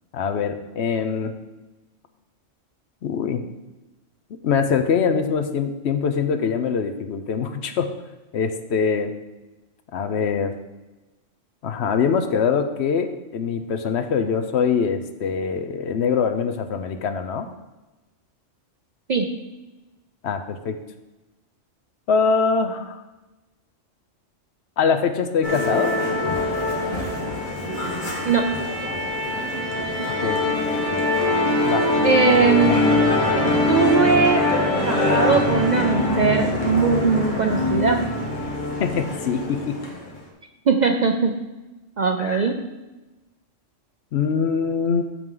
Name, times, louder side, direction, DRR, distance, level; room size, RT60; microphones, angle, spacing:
voice 1, 0.1-1.3 3.0-3.4 4.4-7.9 8.3-9.1 9.9-10.5 11.6-17.5 20.2-20.8 22.1-23.0 24.8-25.9 30.2-30.4 31.7-31.8 32.7-32.8 38.8-39.8 42.2-42.5 44.1-45.0, left 6 dB, 65° left, 8 dB, 0.9 m, -23 dB
Musical instrument, 25.4-40.1, left 2 dB, 40° left, 1.6 m, -23 dB
voice 2, 32.0-32.8 33.4-34.5 34.9-38.1 40.7-41.4 42.0-42.6, right 4 dB, 50° right, 4 dB, 0.5 m, -20 dB
13.0 x 4.6 x 3.8 m, 1.1 s
omnidirectional pair, 1.3 m